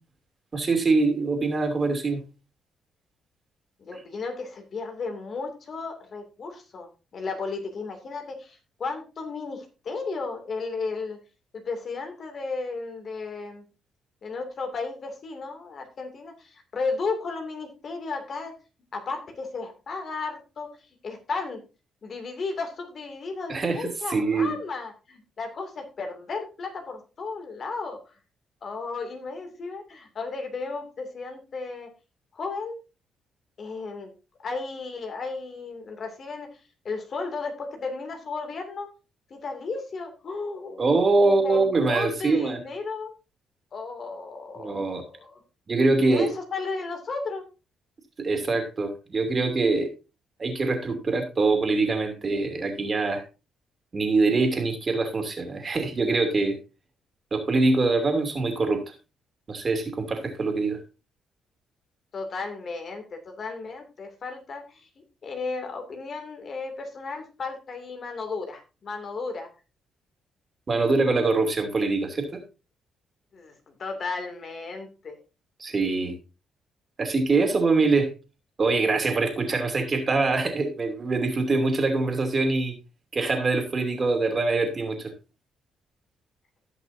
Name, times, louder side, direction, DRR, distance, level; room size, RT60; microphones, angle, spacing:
voice 1, 0.5-2.2 23.5-24.5 40.8-42.6 44.6-45.0 45.7-46.3 48.2-49.9 50.4-53.2 53.9-56.5 57.3-58.8 59.5-60.8 70.7-72.4 75.6-76.1 77.0-78.1 78.6-82.7 83.1-85.1, right 3 dB, 35° right, 5 dB, 2.8 m, -24 dB
voice 2, 3.8-11.2 11.7-13.6 14.2-18.5 18.9-21.6 22.0-28.1 28.6-31.9 32.3-32.8 33.6-34.1 34.4-36.5 36.8-38.9 39.3-43.1 43.7-45.4 46.1-47.4 62.1-69.5 73.3-75.2, left 4 dB, 50° left, 5 dB, 2.6 m, -34 dB
17.5 x 5.9 x 2.7 m, 0.30 s
cardioid pair, 90°, 0 cm